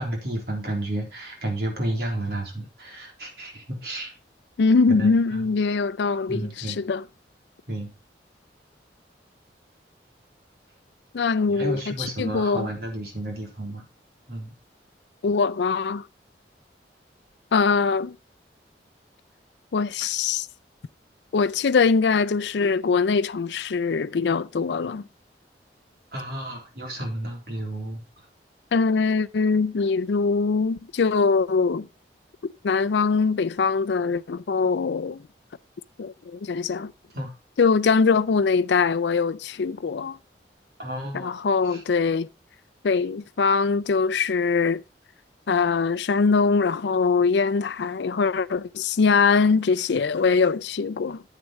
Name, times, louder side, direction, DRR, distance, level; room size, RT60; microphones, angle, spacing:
voice 1, 0.0-4.1 5.0-5.5 6.3-6.8 7.7-7.9 11.5-13.9 14.3-14.5 26.1-28.0 37.1-37.3 40.8-41.3 41.6-41.8, right 1 dB, 60° right, 3.7 m, -32 dB
voice 2, 4.6-7.0 11.1-12.7 15.2-16.1 17.5-18.2 19.7-20.5 21.3-25.0 28.7-31.9 32.4-35.2 36.0-36.9 37.6-40.2 41.1-42.3 42.8-44.8 45.5-51.2, left 4 dB, 80° left, 0.4 m, -22 dB
9.8 x 8.3 x 3.1 m
head